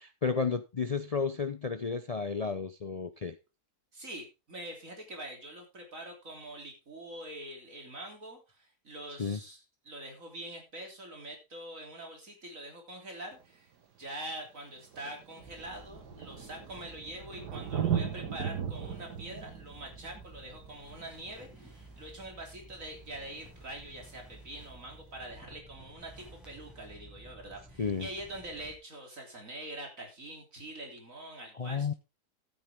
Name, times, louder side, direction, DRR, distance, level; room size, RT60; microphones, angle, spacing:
voice 1, 0.0-3.4 9.2-9.4 27.8-28.1 31.5-31.9, left 5 dB, 75° left, 0.3 m, -32 dB
voice 2, 3.9-9.6 9.9-13.7 14.0-31.9, right 1 dB, 55° right, 3.7 m, -44 dB
Thunder, 13.4-13.5 14.5-14.6 14.8-22.1 23.8-23.9, right 8 dB, 85° right, 2.0 m, -37 dB
sound 1, 15.4-28.8, right 1 dB, ahead, 5.3 m, -53 dB
13.0 x 9.1 x 3.6 m
omnidirectional pair, 1.7 m